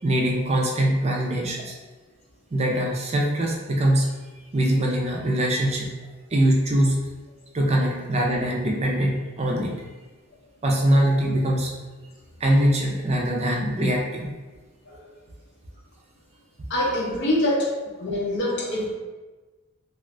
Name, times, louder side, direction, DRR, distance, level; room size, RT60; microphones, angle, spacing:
voice 1, 0.0-1.7 2.5-4.1 4.5-5.9 6.3-7.0 7.5-9.7 10.6-11.7 12.4-14.3, right 1 dB, 35° right, -1 dB, 0.4 m, -22 dB
voice 2, 16.7-17.7 18.0-19.0, left 1 dB, 60° left, -2 dB, 0.6 m, -24 dB
2.5 x 2.4 x 3.2 m, 1.3 s
head